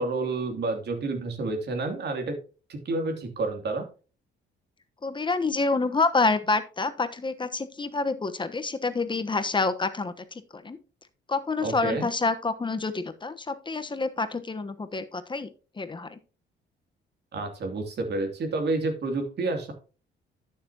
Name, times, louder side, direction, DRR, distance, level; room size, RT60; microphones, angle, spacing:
voice 1, 0.0-2.3 2.7-3.8 11.6-12.1 17.3-19.7, right 3 dB, 55° right, 4 dB, 2.8 m, -29 dB
voice 2, 5.0-10.1 10.5-10.8 11.3-15.5 15.8-16.2, left 3 dB, 25° left, 11 dB, 1.1 m, -27 dB
12.0 x 6.8 x 2.8 m, 0.34 s
cardioid pair, 90°, 20 cm